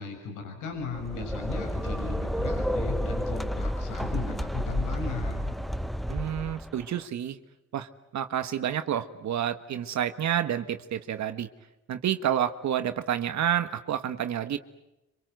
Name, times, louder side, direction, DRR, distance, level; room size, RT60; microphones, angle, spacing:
voice 1, 0.0-5.5, left 4 dB, 85° left, 4 dB, 6.6 m, -36 dB
sound 1, 0.8-6.8, equal, ahead, 1.0 m, -31 dB
voice 2, 6.1-7.4 7.7-11.5 11.9-14.6, right 10 dB, 65° right, 9 dB, 1.4 m, -29 dB
27.0 x 26.0 x 7.9 m, 0.96 s
cardioid pair, 90°, 30 cm